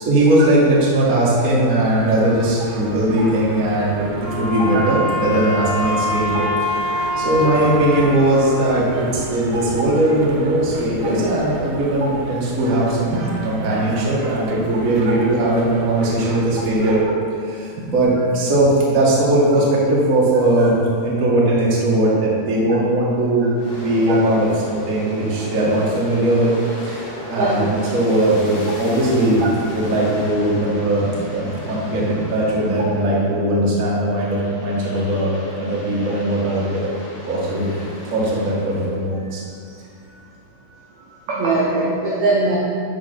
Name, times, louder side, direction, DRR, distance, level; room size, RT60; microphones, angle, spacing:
voice 1, 0.0-17.0 17.4-20.7 21.0-23.5 23.7-26.6 26.8-36.9 37.3-39.4, right 1 dB, 40° right, -6 dB, 1.1 m, -19 dB
sound 1, 1.8-17.0, right 4 dB, 90° right, 2.5 m, -34 dB
Wind instrument woodwind instrument, 4.2-9.4, left 1 dB, 75° left, 1.2 m, -25 dB
Aircraft, 23.5-33.6 34.0-39.0, right 1 dB, 35° left, 2.6 m, -35 dB
voice 2, 41.3-42.6, right 3 dB, 75° right, -4 dB, 1.6 m, -20 dB
12.5 x 4.5 x 4.4 m, 2.3 s
omnidirectional pair, 4.2 m